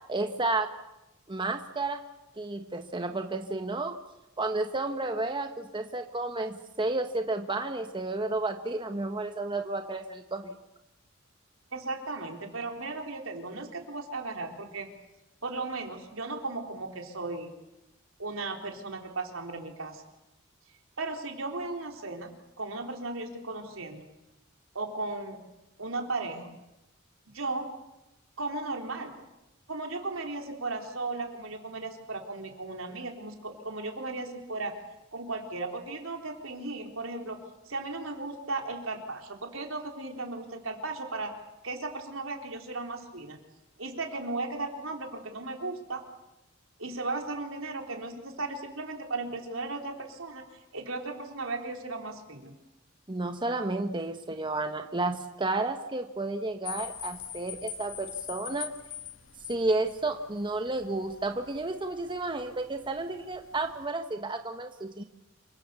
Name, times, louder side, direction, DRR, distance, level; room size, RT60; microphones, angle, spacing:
voice 1, 0.1-0.7 1.3-2.0 2.4-4.0 4.4-10.5 53.1-58.7 59.5-65.0, right 2 dB, 25° right, 6 dB, 1.3 m, -31 dB
voice 2, 11.7-14.9 15.4-17.5 18.2-20.0 21.0-24.0 24.7-25.4 25.8-26.6 27.3-27.7 28.4-29.2 29.7-34.7 35.1-37.4 37.7-41.3 41.6-43.4 43.8-46.0 46.8-50.4 50.7-52.5, right 3 dB, 80° right, 3 dB, 3.9 m, -36 dB
sound 1, 56.6-63.9, left 10 dB, 85° left, 2.7 m, -44 dB
27.5 x 24.5 x 7.0 m, 0.96 s
head